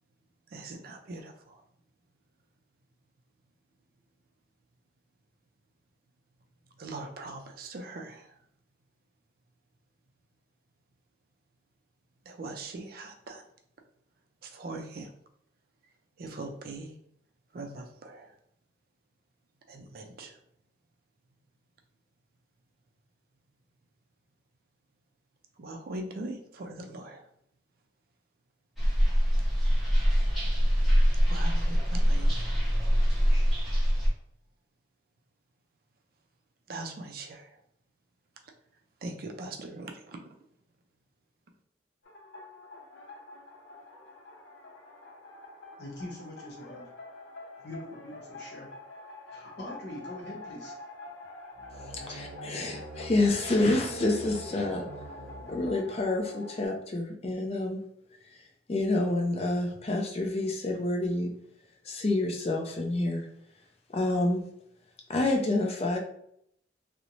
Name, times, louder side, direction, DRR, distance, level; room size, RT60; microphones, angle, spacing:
voice 1, 0.5-1.6 6.8-8.4 12.3-13.4 14.4-15.1 16.2-16.9 17.5-18.3 19.7-20.4 25.6-27.2 30.8-32.4 36.7-37.6 39.0-40.2, right 2 dB, 50° right, 4 dB, 0.4 m, -41 dB
sound 1, 28.8-34.1, equal, ahead, 0.7 m, -24 dB
sound 2, 42.0-56.7, left 2 dB, 85° left, 0.6 m, -47 dB
voice 2, 45.8-46.9 47.6-48.7 49.3-50.7, left 1 dB, 60° left, -2 dB, 0.9 m, -42 dB
sound 3, 51.5-56.3, right 2 dB, 90° right, 0.6 m, -44 dB
voice 3, 51.7-54.9 55.5-57.8 58.7-61.3 61.9-63.3 63.9-64.5 65.1-66.0, left 2 dB, 30° left, 2 dB, 0.4 m, -28 dB
2.5 x 2.0 x 2.9 m, 0.71 s
head